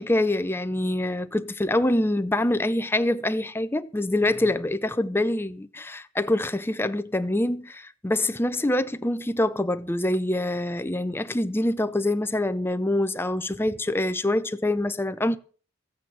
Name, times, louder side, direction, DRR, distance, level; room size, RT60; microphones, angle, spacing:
voice 1, 0.0-15.4, left 1 dB, 10° left, 0.6 m, -25 dB
14.0 x 8.8 x 7.2 m
head